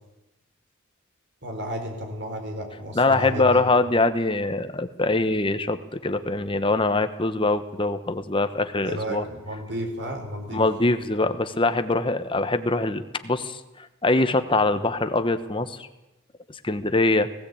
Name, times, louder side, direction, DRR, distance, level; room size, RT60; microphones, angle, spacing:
voice 1, 1.4-3.6 8.8-10.6, equal, 55° right, 3 dB, 4.9 m, -32 dB
voice 2, 2.9-9.2 10.5-13.6 14.0-15.9 16.6-17.3, left 2 dB, 25° left, 9 dB, 1.1 m, -23 dB
19.0 x 16.0 x 8.6 m, 0.98 s
head